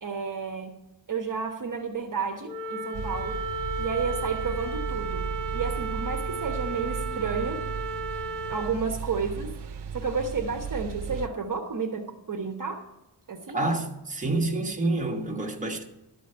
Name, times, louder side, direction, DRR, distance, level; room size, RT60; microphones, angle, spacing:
voice 1, 0.0-0.7 1.1-3.4 3.8-7.6 8.5-12.8 13.3-13.6, right 5 dB, 45° right, 1.1 m, -31 dB
Wind instrument woodwind instrument, 2.4-8.8, right 2 dB, 5° left, 2.6 m, -34 dB
sound 1, 2.9-11.3, right 7 dB, 65° right, 0.7 m, -35 dB
voice 2, 13.5-15.8, right 2 dB, 15° right, 1.5 m, -28 dB
13.0 x 5.1 x 7.8 m
wide cardioid pair, 120°, 44 cm